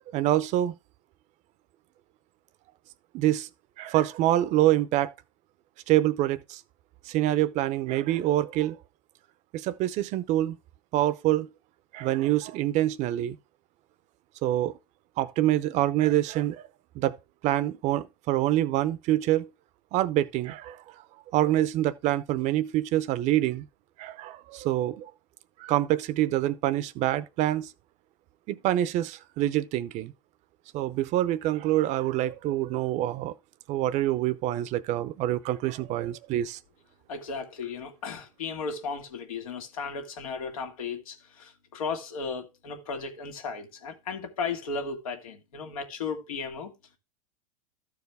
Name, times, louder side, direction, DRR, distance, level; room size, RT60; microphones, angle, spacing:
voice 1, 0.1-0.7 3.1-3.5 3.8-5.1 5.9-6.6 7.1-8.8 9.5-10.6 10.9-11.5 11.9-13.4 14.4-14.7 15.2-16.6 16.9-17.2 17.4-19.5 19.9-20.8 21.3-23.7 24.0-25.1 25.6-27.7 28.5-30.1 30.7-33.3 33.7-36.6, right 14 dB, 40° right, 0.6 m, -26 dB
voice 2, 37.1-46.7, left 5 dB, 85° left, 1.9 m, -35 dB
13.5 x 4.8 x 3.4 m
supercardioid pair, 120°, 18 cm